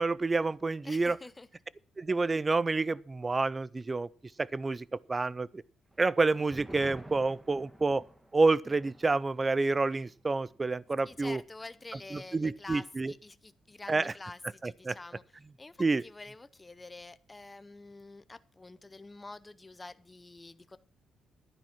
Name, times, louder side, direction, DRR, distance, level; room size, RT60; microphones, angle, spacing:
voice 1, 0.0-1.2 2.0-4.1 4.4-5.6 6.0-8.0 8.3-11.4 12.1-13.1 13.9-14.1 14.6-15.0 15.8-16.0, right 3 dB, 25° right, 0.5 m, -28 dB
voice 2, 0.8-1.5 11.0-15.2 15.6-20.8, left 2 dB, 20° left, 0.6 m, -47 dB
sound 1, 5.9-12.8 13.1-13.2 13.6-14.1, right 1 dB, 10° right, 1.5 m, -53 dB
11.0 x 10.0 x 5.9 m
cardioid pair, 90°, 0 cm